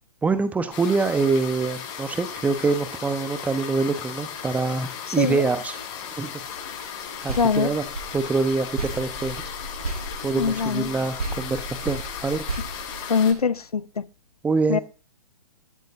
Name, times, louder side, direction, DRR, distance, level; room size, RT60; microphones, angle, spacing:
voice 1, 0.2-5.7 6.2-6.3 7.2-7.8 8.1-9.4 10.2-12.4 14.4-14.8, right 4 dB, 5° right, 1.1 m, -25 dB
sound 1, 0.7-13.3, left 7 dB, 30° left, 7.8 m, -36 dB
voice 2, 5.1-5.4 7.4-7.7 10.4-10.9 13.1-14.1 14.7-14.8, left 6 dB, 70° left, 0.8 m, -23 dB
sound 2, 7.3-10.9 11.2-13.7, right 3 dB, 70° right, 2.2 m, -35 dB
20.0 x 13.0 x 2.7 m
figure-of-eight pair, 120°, 20 cm